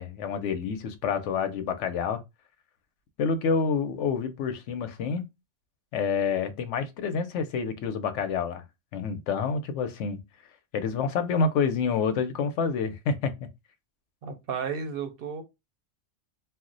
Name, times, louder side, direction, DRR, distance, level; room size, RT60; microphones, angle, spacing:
voice 1, 0.0-2.2 3.2-5.2 5.9-8.6 8.9-10.2 10.7-13.3, left 5 dB, 85° left, 0.9 m, -28 dB
voice 2, 14.2-15.4, right 6 dB, 60° right, 0.7 m, -33 dB
2.3 x 2.0 x 3.8 m
omnidirectional pair, 1.2 m